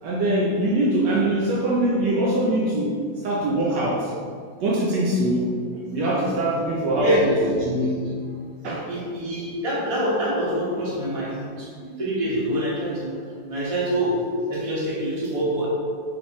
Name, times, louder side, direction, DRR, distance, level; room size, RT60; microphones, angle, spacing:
voice 1, 0.0-3.0 3.2-4.1 4.6-5.6 5.9-7.3 7.6-8.1 8.6-8.9, right 1 dB, 75° right, -4 dB, 1.1 m, -23 dB
voice 2, 6.9-7.5 7.8-8.1 8.9-13.1 13.5-14.1 14.5-15.7, equal, 25° right, -7 dB, 0.7 m, -25 dB
3.3 x 3.2 x 4.0 m, 2.1 s
omnidirectional pair, 2.2 m